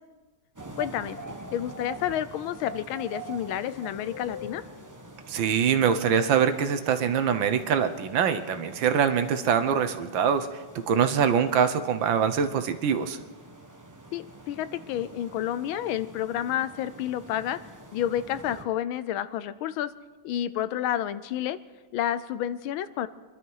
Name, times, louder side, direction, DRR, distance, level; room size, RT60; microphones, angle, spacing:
sound 1, 0.6-18.6, right 1 dB, 15° right, 0.6 m, -45 dB
voice 1, 0.8-1.2 1.5-4.6 14.1-17.6 17.9-19.9 20.2-21.6 21.9-23.1, left 11 dB, 80° left, 14 dB, 1.5 m, -30 dB
voice 2, 5.3-10.5 10.9-13.2, right 7 dB, 70° right, 9 dB, 1.6 m, -24 dB
25.0 x 12.0 x 4.7 m, 1.3 s
omnidirectional pair, 2.2 m